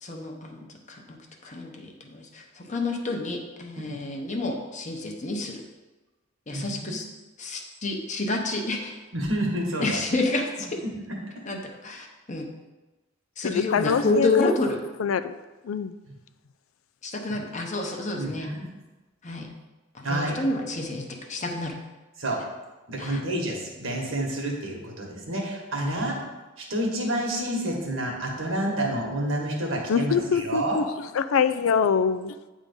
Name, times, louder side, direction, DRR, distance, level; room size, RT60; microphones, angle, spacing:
voice 1, 0.0-1.0 1.4-5.6 6.5-7.0 7.4-9.0 9.8-10.8 11.4-12.5 13.4-14.8 17.0-18.5 19.2-19.5 19.9-21.8 23.0-23.2 25.8-26.0, left 2 dB, 35° left, 2 dB, 1.0 m, -29 dB
voice 2, 6.5-7.0 9.1-10.0 10.9-11.0 16.1-16.2 17.3-17.4 18.2-18.7 20.0-20.4 22.2-22.4 22.9-26.2 26.6-30.8, right 1 dB, 75° right, 0 dB, 1.8 m, -29 dB
voice 3, 13.4-14.5 15.0-15.3 15.6-16.0 29.9-30.8 31.1-32.3, left 6 dB, 85° left, 12 dB, 0.4 m, -24 dB
8.9 x 3.7 x 5.3 m, 1.1 s
head